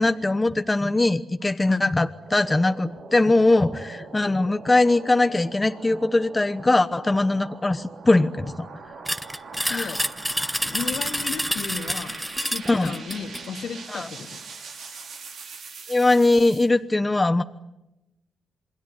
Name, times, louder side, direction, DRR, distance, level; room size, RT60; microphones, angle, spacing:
voice 1, 0.0-8.7 9.6-9.9 12.6-13.0 13.9-14.1 15.9-17.4, left 2 dB, 20° left, 9 dB, 1.0 m, -21 dB
sound 1, 2.1-16.7, right 4 dB, 85° right, 5.5 m, -42 dB
sound 2, 9.1-13.5, equal, ahead, 1.0 m, -28 dB
voice 2, 9.7-10.0 10.6-14.4, left 6 dB, 75° left, 5 dB, 2.4 m, -34 dB
27.5 x 21.5 x 9.8 m, 0.94 s
cardioid pair, 85°, 0 cm